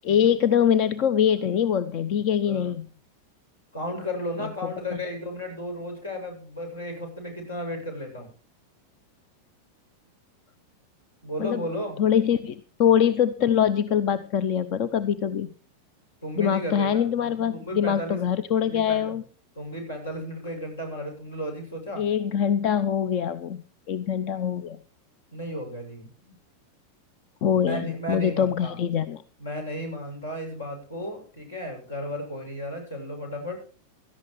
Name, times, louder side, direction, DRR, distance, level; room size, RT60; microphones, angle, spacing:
voice 1, 0.0-2.9 4.4-4.5 11.4-11.6 12.0-15.5 16.4-19.2 22.0-23.6 23.9-24.8 27.4-29.2, left 8 dB, 40° left, 16 dB, 0.8 m, -23 dB
voice 2, 3.7-8.3 11.2-12.0 16.2-17.0 17.5-18.2 18.6-19.0 19.6-22.0 25.3-26.3 27.5-28.8 29.4-33.6, equal, 70° left, 2 dB, 7.2 m, -34 dB
17.5 x 14.0 x 3.2 m, 0.40 s
figure-of-eight pair, 90°, 0 cm